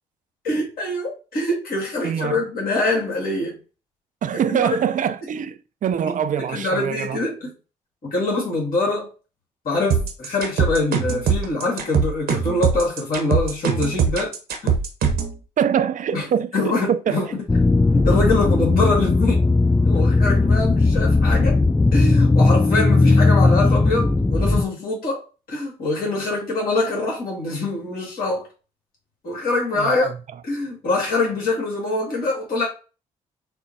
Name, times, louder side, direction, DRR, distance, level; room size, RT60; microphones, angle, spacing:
voice 1, 0.4-3.6 4.5-4.8 6.5-7.5 8.0-9.1 9.6-14.3 14.6-14.8 16.1-16.2 16.5-17.3 18.0-19.4 19.8-21.6 21.9-28.5 29.2-30.1 30.4-32.7, left 2 dB, 60° left, 2.0 m, -24 dB
voice 2, 2.0-2.4 4.2-7.2 15.6-17.2 29.7-30.1, right 8 dB, 50° right, 0.5 m, -24 dB
sound 1, 9.9-15.3, right 6 dB, 65° right, 1.0 m, -21 dB
sound 2, 17.5-24.6, left 3 dB, 10° left, 0.3 m, -17 dB
6.5 x 2.2 x 2.7 m
hypercardioid pair, 45°, 17 cm